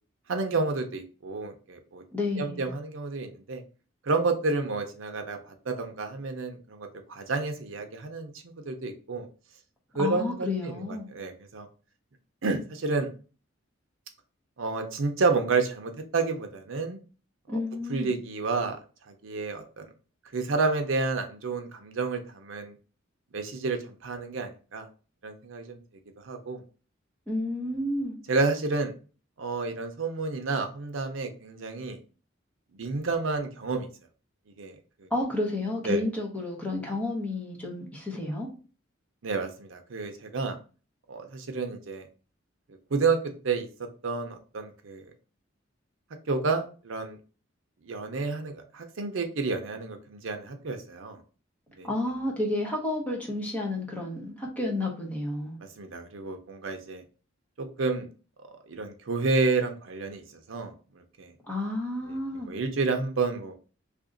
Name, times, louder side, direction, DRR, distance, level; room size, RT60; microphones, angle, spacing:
voice 1, 0.3-2.0 2.4-3.6 4.1-8.3 8.7-9.3 9.9-11.7 12.4-13.1 14.6-17.0 17.5-17.6 17.9-18.8 19.2-19.8 20.3-22.7 23.3-24.9 25.2-25.8 26.2-26.6 28.3-28.9 29.4-32.0 32.8-33.9 34.6-35.1 35.9-36.0 39.2-40.6 41.1-42.1 42.9-43.2 43.4-43.7 44.0-45.0 46.3-47.2 47.9-51.2 51.8-51.9 55.8-57.0 57.6-58.1 58.7-60.2 60.5-60.7 61.2-61.3 62.5-63.5, right 4 dB, 75° right, 0.6 m, -30 dB
voice 2, 2.1-2.7 10.0-11.1 17.5-18.1 27.3-28.2 35.1-38.5 51.8-55.6 61.5-62.5, left 2 dB, 10° left, 0.9 m, -31 dB
2.8 x 2.5 x 3.8 m
head